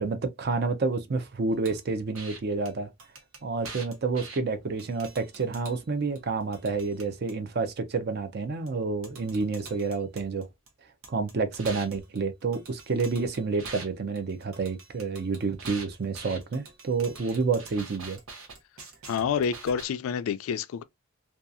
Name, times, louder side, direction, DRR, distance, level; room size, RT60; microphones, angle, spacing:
voice 1, 0.0-2.9 3.4-10.5 11.1-18.2, right 4 dB, 50° right, 0.5 m, -29 dB
sound 1, 1.6-1.8 2.1-2.4 2.7-2.8 3.0-4.4 4.8-5.8 6.2-7.3 8.7-8.8 9.0-10.7 11.0-13.9 14.2-19.9, right 4 dB, 85° right, 0.9 m, -44 dB
voice 2, 19.1-20.8, left 7 dB, 85° left, 0.3 m, -28 dB
2.7 x 2.3 x 2.4 m
head